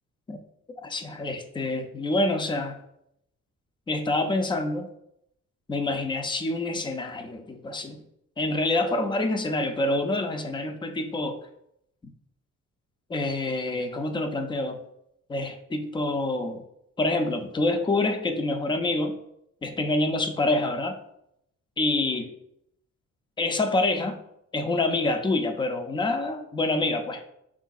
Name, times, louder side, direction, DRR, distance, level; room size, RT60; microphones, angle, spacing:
voice 1, 0.8-2.8 3.9-4.9 5.7-8.0 8.4-11.4 13.1-14.8 15.3-16.6 17.0-19.2 19.6-21.0 21.8-22.3 23.4-24.2 24.5-27.2, left 2 dB, 15° left, 7 dB, 0.4 m, -27 dB
4.7 x 3.6 x 2.3 m, 0.77 s
cardioid pair, 125°, 30 cm